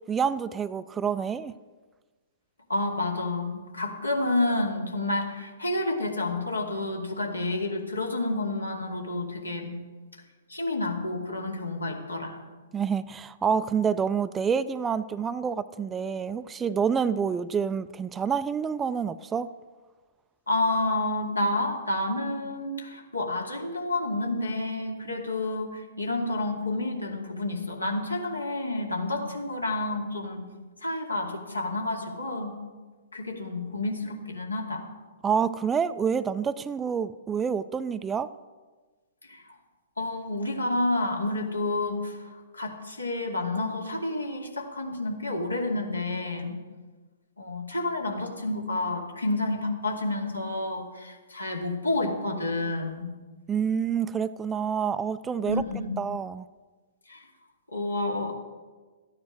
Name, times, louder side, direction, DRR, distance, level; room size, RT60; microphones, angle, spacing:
voice 1, 0.1-1.5 12.7-19.5 35.2-38.3 53.5-55.6 56.0-56.4, right 7 dB, 15° right, 14 dB, 0.4 m, -27 dB
voice 2, 2.7-9.7 10.5-12.4 20.5-30.4 30.8-32.6 33.1-34.8 39.2-39.4 40.0-46.6 47.4-53.1 55.5-56.0 57.1-57.2 57.7-58.3, left 2 dB, 80° left, 1 dB, 2.5 m, -29 dB
14.0 x 9.7 x 6.3 m, 1.3 s
figure-of-eight pair, 115°, 0 cm